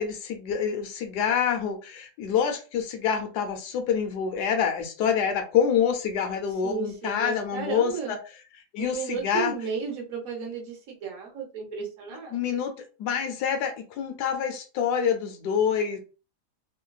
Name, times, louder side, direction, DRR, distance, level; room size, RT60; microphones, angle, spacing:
voice 1, 0.0-8.2 8.7-9.5 12.3-12.7 13.0-16.0, left 7 dB, 80° left, 1.2 m, -26 dB
voice 2, 6.6-8.1 8.8-12.6, right 5 dB, 60° right, 1.2 m, -34 dB
3.2 x 2.2 x 2.2 m
omnidirectional pair, 1.8 m